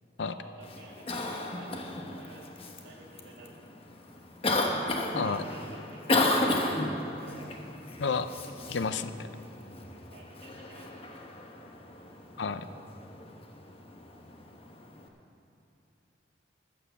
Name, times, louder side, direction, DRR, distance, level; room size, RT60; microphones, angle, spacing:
voice 1, 0.2-2.4 2.8-3.7 5.3-6.3 7.2-7.5 10.1-11.3, right 1 dB, 65° right, -2 dB, 2.6 m, -51 dB
Cough, 0.6-15.1, left 2 dB, 35° left, 1.0 m, -34 dB
voice 2, 8.0-8.3 8.7-9.3 12.4-12.6, left 5 dB, 80° left, 11 dB, 0.6 m, -30 dB
12.5 x 8.7 x 7.0 m, 2.7 s
head